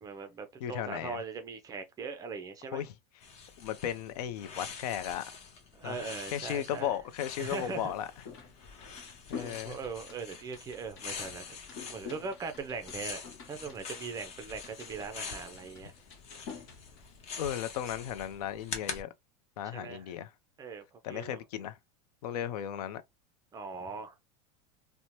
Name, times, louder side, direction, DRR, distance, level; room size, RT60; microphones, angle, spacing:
voice 1, 0.0-2.8 5.7-7.0 7.4-8.0 9.3-11.4 11.9-15.9 19.7-20.1 20.6-21.4 23.5-24.1, right 5 dB, 20° right, 0.4 m, -40 dB
voice 2, 0.6-1.2 2.7-2.9 3.6-5.2 5.8-6.0 6.3-8.1 9.3-9.8 17.4-19.1 19.6-20.3 21.0-21.8 22.2-23.0, left 10 dB, 80° left, 0.5 m, -35 dB
sound 1, 3.2-19.0, left 5 dB, 35° left, 0.7 m, -45 dB
sound 2, 7.8-17.5, left 6 dB, 50° left, 1.1 m, -49 dB
2.7 x 2.1 x 3.0 m
supercardioid pair, 145°, 20 cm